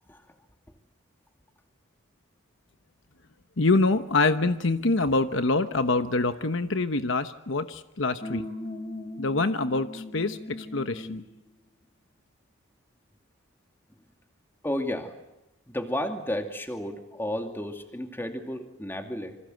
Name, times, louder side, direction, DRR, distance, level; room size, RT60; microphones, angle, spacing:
voice 1, 3.6-8.4 9.2-11.2, left 3 dB, 65° left, 10 dB, 1.0 m, -25 dB
sound 1, 8.2-11.4, left 1 dB, 35° left, 3.4 m, -38 dB
voice 2, 14.6-15.1 15.7-19.4, left 1 dB, 10° left, 5 dB, 2.5 m, -32 dB
28.0 x 25.5 x 7.9 m, 0.94 s
head